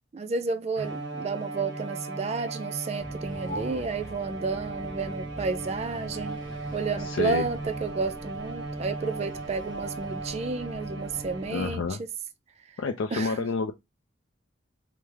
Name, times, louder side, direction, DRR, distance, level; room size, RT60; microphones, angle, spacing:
voice 1, 0.1-6.4 6.7-11.8 13.1-13.5, right 4 dB, 35° right, 0.3 m, -31 dB
Bowed string instrument, 0.8-12.0, right 3 dB, 60° right, 0.7 m, -37 dB
sound 1, 3.0-11.9, equal, 15° left, 0.7 m, -46 dB
sound 2, 3.3-10.2, left 1 dB, 65° left, 0.9 m, -48 dB
voice 2, 7.0-7.5 11.5-12.0 12.8-13.7, left 4 dB, 85° left, 0.4 m, -29 dB
3.2 x 2.1 x 3.3 m
head